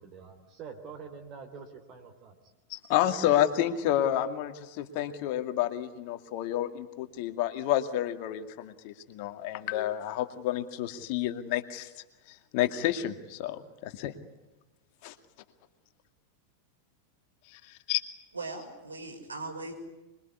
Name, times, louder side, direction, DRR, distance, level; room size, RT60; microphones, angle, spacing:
voice 1, 0.0-2.4, right 5 dB, 35° right, 3 dB, 3.9 m, -46 dB
voice 2, 2.7-11.9 12.3-14.1 15.0-15.1 17.5-18.0, left 12 dB, 45° left, 8 dB, 2.3 m, -30 dB
voice 3, 18.3-19.7, right 3 dB, 75° right, 3 dB, 6.1 m, -39 dB
26.5 x 23.0 x 9.7 m, 1.0 s
figure-of-eight pair, 90°, 0 cm